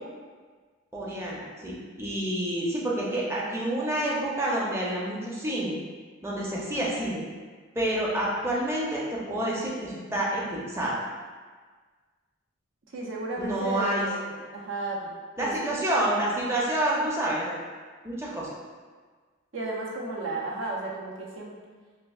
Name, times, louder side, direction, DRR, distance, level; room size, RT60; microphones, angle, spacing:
voice 1, 0.9-5.8 6.2-7.2 7.7-11.0 13.4-14.1 15.4-17.5 18.0-18.5, right 1 dB, 15° right, -5 dB, 0.5 m, -28 dB
voice 2, 12.9-15.1 15.4-15.8 19.5-21.5, right 2 dB, 80° right, -3 dB, 0.6 m, -34 dB
4.5 x 2.3 x 2.3 m, 1.5 s
head